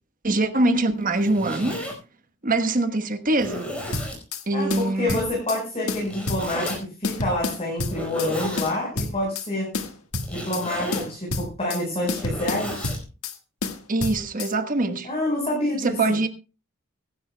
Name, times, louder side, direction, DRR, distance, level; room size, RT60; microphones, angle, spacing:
voice 1, 0.2-1.9 2.4-3.7 4.5-5.2 13.9-15.1 15.8-16.3, right 2 dB, 40° right, 1.2 m, -23 dB
Zipper (clothing), 1.0-1.9 2.6-2.7 3.3-4.2 6.0-6.8 7.8-8.7 10.2-11.1 11.9-13.0, equal, 5° left, 5.0 m, -33 dB
sound 1, 3.9-4.4 4.7-5.6 5.9-6.8 7.0-8.3 8.6-9.5 9.7-10.6 10.9-11.8 12.1-13.4 13.6-14.5, left 3 dB, 85° left, 1.5 m, -29 dB
voice 2, 4.5-9.7 10.3-12.9 15.0-16.0, left 1 dB, 30° left, 4.6 m, -27 dB
23.5 x 11.0 x 2.2 m
head